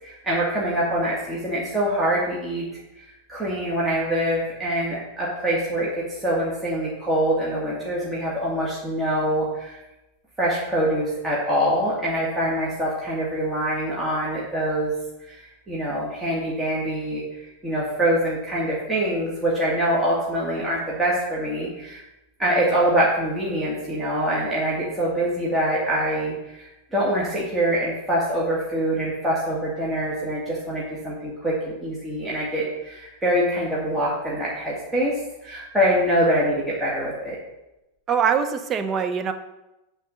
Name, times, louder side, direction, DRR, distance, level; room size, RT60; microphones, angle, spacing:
voice 1, 0.0-2.6 3.0-9.8 10.4-14.9 15.2-22.0 22.4-37.4, right 1 dB, 10° right, -6 dB, 2.1 m, -24 dB
voice 2, 38.1-39.3, right 7 dB, 25° right, 9 dB, 0.8 m, -23 dB
9.1 x 3.8 x 6.5 m, 0.96 s
figure-of-eight pair, 90°, 0 cm